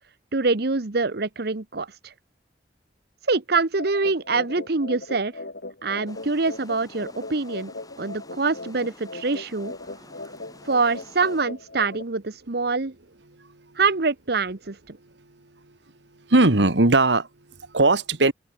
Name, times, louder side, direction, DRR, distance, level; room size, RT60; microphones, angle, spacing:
voice 1, 0.3-2.1 3.3-5.3 5.8-7.7 8.0-9.7 10.6-12.9 13.7-14.8, right 3 dB, 65° right, 1.1 m, -25 dB
sound 1, 3.8-12.0, left 2 dB, 65° left, 2.6 m, -39 dB
Water, 6.1-11.4, left 2 dB, 20° left, 6.1 m, -50 dB
voice 2, 10.1-10.7 13.3-13.8 16.3-18.3, right 2 dB, 85° right, 1.9 m, -21 dB
open air
head